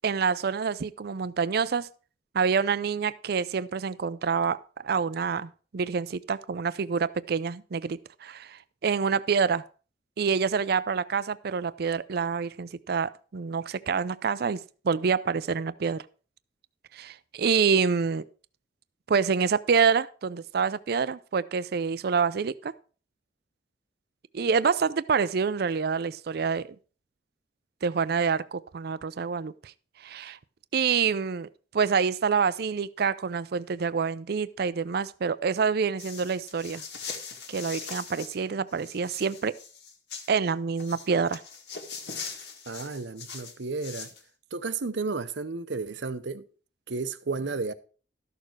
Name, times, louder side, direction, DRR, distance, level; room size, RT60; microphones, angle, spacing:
voice 1, 0.0-1.9 2.3-4.6 4.8-9.6 10.2-14.6 14.8-16.0 16.9-18.2 19.1-22.7 24.3-26.7 27.8-29.7 30.0-30.4 30.7-31.5 31.7-36.8 37.5-39.5 40.3-41.4, right 5 dB, 60° right, 0.5 m, -27 dB
sound 1, 36.0-38.4 38.7-40.3 40.8-44.2, left 5 dB, 70° left, 1.8 m, -41 dB
voice 2, 42.7-44.1 44.5-46.4 46.9-47.7, right 4 dB, 85° right, 0.8 m, -32 dB
13.0 x 6.7 x 4.6 m
head